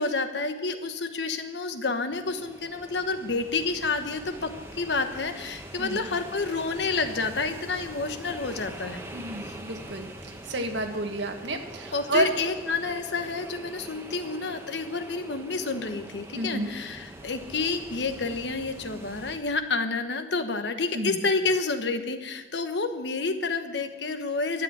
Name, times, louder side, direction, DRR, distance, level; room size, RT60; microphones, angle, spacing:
voice 1, 0.0-9.0 9.5-9.6 11.9-24.6, left 3 dB, 75° left, 8 dB, 1.1 m, -29 dB
sound 1, 2.1-19.4, right 1 dB, 15° right, 1.3 m, -43 dB
voice 2, 9.1-12.3 16.3-16.7 20.9-21.2, right 1 dB, 85° right, 4 dB, 1.8 m, -30 dB
13.0 x 8.0 x 9.0 m, 1.2 s
head